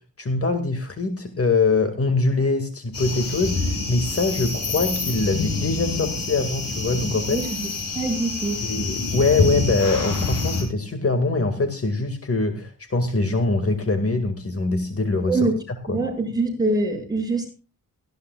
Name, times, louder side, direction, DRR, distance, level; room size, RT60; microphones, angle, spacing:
voice 1, 0.2-7.4 8.6-15.5 15.9-16.0, left 3 dB, 40° left, 7 dB, 2.2 m, -23 dB
sound 1, 2.9-10.6, left 3 dB, 80° left, 7.6 m, -27 dB
voice 2, 7.1-7.7 7.9-8.7 15.3-15.5 15.9-17.5, right 2 dB, 10° right, 2 dB, 7.1 m, -24 dB
18.5 x 16.0 x 2.4 m, 0.33 s
wide cardioid pair, 110°, 34 cm